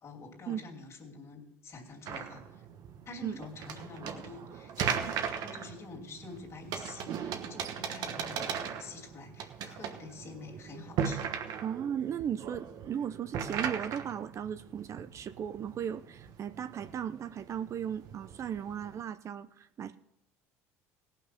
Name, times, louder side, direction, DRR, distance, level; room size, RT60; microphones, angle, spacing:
voice 1, 0.0-2.6 3.1-11.3, left 3 dB, 40° left, 1 dB, 2.8 m, -47 dB
sound 1, 2.1-19.0, right 7 dB, 60° right, 1.1 m, -38 dB
voice 2, 11.6-20.0, right 9 dB, 45° right, 12 dB, 0.5 m, -36 dB
17.0 x 6.0 x 5.7 m, 0.80 s
supercardioid pair, 90°, 7 cm